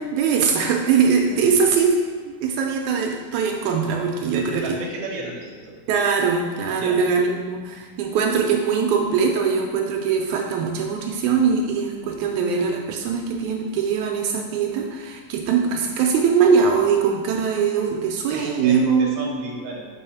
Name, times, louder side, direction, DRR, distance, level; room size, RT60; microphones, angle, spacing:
voice 1, 0.0-4.8 5.9-19.1, right 6 dB, 80° right, 1 dB, 2.0 m, -21 dB
voice 2, 4.2-5.8 6.7-7.0 18.3-19.9, right 2 dB, 55° right, -2 dB, 1.5 m, -33 dB
5.4 x 4.0 x 5.6 m, 1.5 s
omnidirectional pair, 3.5 m